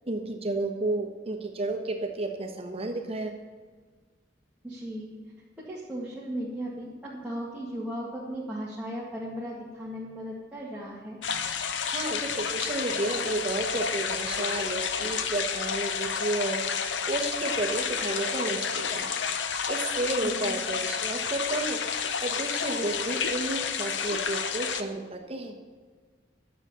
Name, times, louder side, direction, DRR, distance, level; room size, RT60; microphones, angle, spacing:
voice 1, 0.1-3.3 11.9-19.1 19.7-21.8 22.2-25.5, right 2 dB, 35° right, 3 dB, 1.2 m, -32 dB
voice 2, 4.6-5.2 5.7-11.2 20.4-20.6, equal, 10° right, -8 dB, 1.9 m, -36 dB
sound 1, 11.2-24.8, left 6 dB, 80° left, 0.8 m, -30 dB
11.5 x 7.4 x 7.0 m, 1.5 s
head